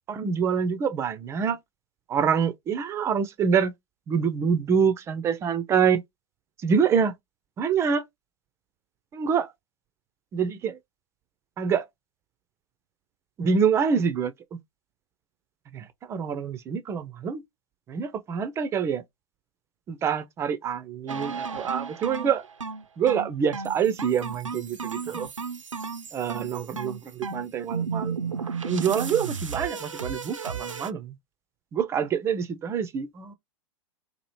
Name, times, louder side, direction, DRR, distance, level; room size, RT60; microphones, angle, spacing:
voice 1, 0.1-1.6 2.1-3.7 4.1-6.0 6.6-7.1 7.6-8.0 9.1-9.5 10.3-10.8 11.6-11.9 13.4-14.6 15.7-17.4 17.9-19.0 19.9-22.4 23.0-25.3 26.1-28.3 28.6-31.2 31.7-33.3, right 7 dB, 15° right, 0.3 m, -26 dB
sound 1, 21.1-30.9, right 5 dB, 90° right, 0.4 m, -34 dB
2.7 x 2.4 x 3.0 m
figure-of-eight pair, 100°, 16 cm